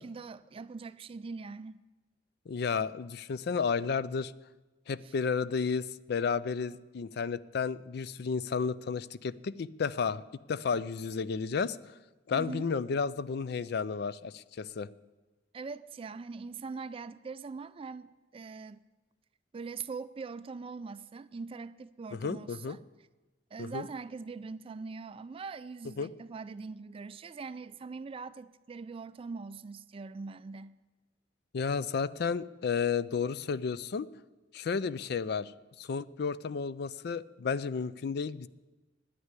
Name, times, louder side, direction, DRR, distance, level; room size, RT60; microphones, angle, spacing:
voice 1, 0.0-1.8 5.0-5.1 12.3-12.7 15.5-18.8 19.5-22.8 23.5-30.8, right 4 dB, 30° right, 0.3 m, -42 dB
voice 2, 2.5-4.3 4.9-10.2 10.5-11.8 12.3-14.9 22.1-22.8 23.6-23.9 26.0-26.1 31.5-34.1 34.5-35.5 35.8-38.5, left 5 dB, 60° left, 0.4 m, -32 dB
9.6 x 9.5 x 9.7 m
head